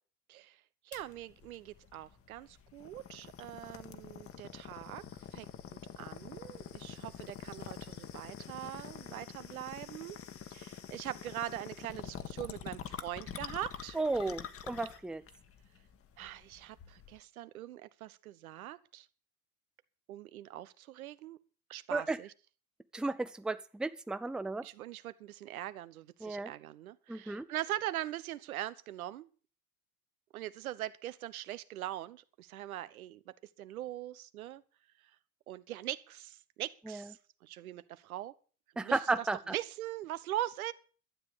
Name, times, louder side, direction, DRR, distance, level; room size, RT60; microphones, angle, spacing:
voice 1, 0.8-5.0 5.3-5.5 6.0-10.2 10.5-14.0 16.2-19.1 20.1-21.4 21.7-22.3 24.6-29.3 30.3-33.2 33.6-34.6 35.5-38.3 38.8-40.7, right 13 dB, 70° right, 1.1 m, -42 dB
sound 1, 0.9-17.2, left 8 dB, 30° left, 1.5 m, -47 dB
voice 2, 13.9-15.2 21.9-22.2 22.9-24.6 26.2-26.5 27.1-27.4 36.9-37.1 38.8-39.5, right 3 dB, ahead, 0.7 m, -34 dB
12.5 x 9.6 x 6.8 m
figure-of-eight pair, 80°, 44 cm